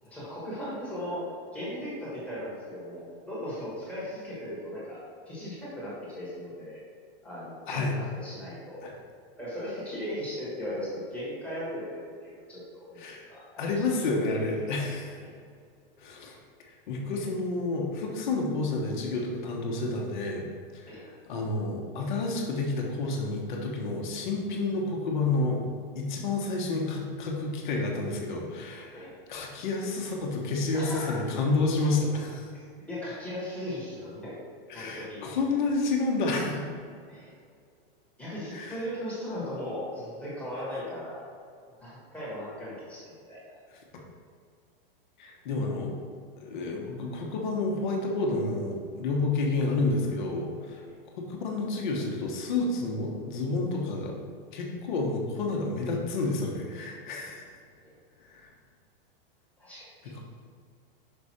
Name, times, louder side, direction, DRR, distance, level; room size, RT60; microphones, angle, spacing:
voice 1, 0.0-5.0 5.3-6.8 7.2-8.8 9.4-13.6 15.2-15.4 20.9-21.0 28.9-29.1 30.7-31.3 32.5-32.6 32.9-34.3 34.7-35.2 37.1-37.3 38.2-41.2 41.8-43.6 50.9-51.0 57.8-57.9 59.6-60.1, equal, 5° left, -8 dB, 1.3 m, -38 dB
voice 2, 12.9-13.3 13.6-15.2 16.0-16.4 16.9-20.5 20.7-25.6 25.9-32.5 34.7-36.7 38.5-38.8 45.2-46.0 46.4-50.8 51.2-54.1 54.5-57.5 58.3-58.5 60.0-60.2, left 3 dB, 50° left, 0 dB, 1.2 m, -30 dB
5.9 x 5.1 x 4.2 m, 2.2 s
supercardioid pair, 180°, 30 cm